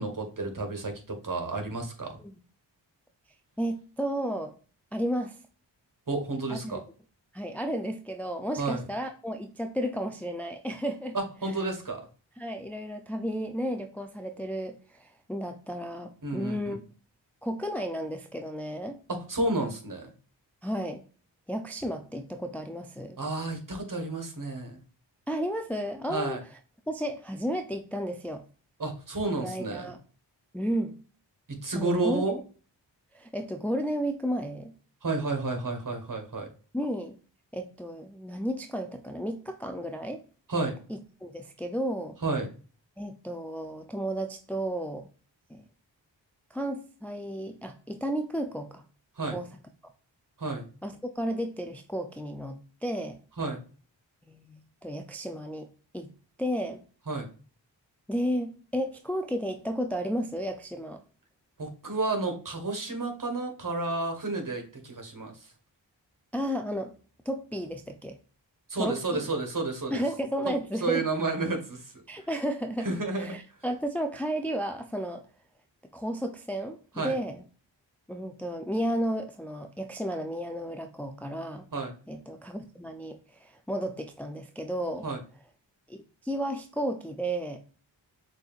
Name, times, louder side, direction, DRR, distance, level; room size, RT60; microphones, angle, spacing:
voice 1, 0.0-2.2 6.1-6.8 8.6-8.8 11.1-12.0 16.2-16.8 19.1-20.1 23.2-24.8 26.1-26.4 28.8-29.9 31.6-32.4 35.0-36.5 40.5-40.7 42.2-42.5 49.2-49.4 50.4-50.7 53.4-53.6 57.1-57.2 61.6-65.3 68.7-70.0 70.8-71.9 72.8-73.4 77.0-77.1 81.7-81.9 85.0-85.2, right 2 dB, 45° right, 4 dB, 1.5 m, -31 dB
voice 2, 3.6-4.5 4.9-5.4 6.5-6.8 7.3-11.2 11.4-11.5 12.4-16.8 17.4-19.0 20.6-21.0 21.5-23.2 25.3-26.6 26.9-28.4 29.4-30.0 30.5-31.0 31.7-32.2 33.1-34.7 36.7-37.2 37.5-40.2 40.9-42.2 43.0-45.1 45.5-45.6 46.5-48.8 49.3-49.5 50.8-53.2 54.3-55.7 55.9-56.1 56.4-56.8 58.1-61.0 66.3-66.9 67.2-68.2 68.8-69.3 69.9-71.0 72.1-72.9 73.1-75.3 75.9-77.4 78.1-81.7 82.1-85.1 85.9-87.6, equal, 5° left, 6 dB, 0.5 m, -33 dB
6.2 x 2.7 x 2.4 m, 0.38 s
cardioid pair, 40°, 45 cm